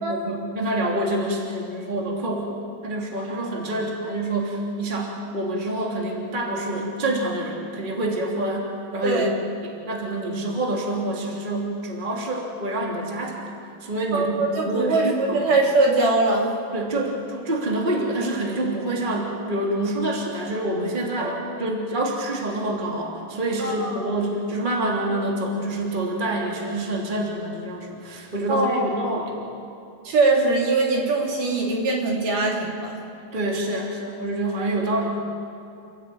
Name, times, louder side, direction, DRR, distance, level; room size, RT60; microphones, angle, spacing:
voice 1, 0.1-2.6 2.8-13.5 13.8-15.5 16.7-29.3 33.3-35.2, right 1 dB, 15° right, -1 dB, 2.9 m, -27 dB
voice 2, 14.1-16.5 21.2-21.4 23.6-24.0 28.5-28.8 30.0-32.9, right 3 dB, 60° right, -1 dB, 4.4 m, -22 dB
29.5 x 15.5 x 9.3 m, 2.7 s
omnidirectional pair, 4.3 m